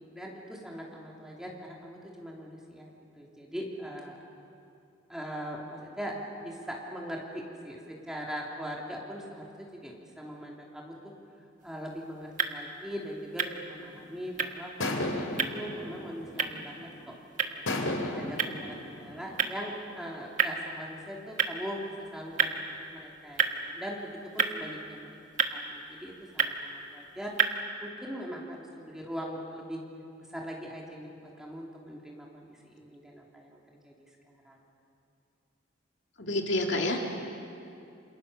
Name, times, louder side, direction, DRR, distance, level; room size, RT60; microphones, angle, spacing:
voice 1, 0.1-1.5 1.8-4.2 5.1-10.9 11.6-17.1 18.1-25.1 25.5-27.3 27.8-29.8 30.3-33.6 33.8-34.1 34.4-34.6, equal, 5° right, -2 dB, 3.1 m, -41 dB
sound 1, 11.6-27.6, right 6 dB, 40° right, 1.3 m, -34 dB
sound 2, 13.9-14.2 14.8-16.9 17.7-19.5, left 1 dB, 80° left, 3.2 m, -34 dB
voice 2, 36.2-37.1, left 1 dB, 60° left, 1 dB, 2.8 m, -28 dB
28.5 x 27.0 x 6.8 m, 2.6 s
head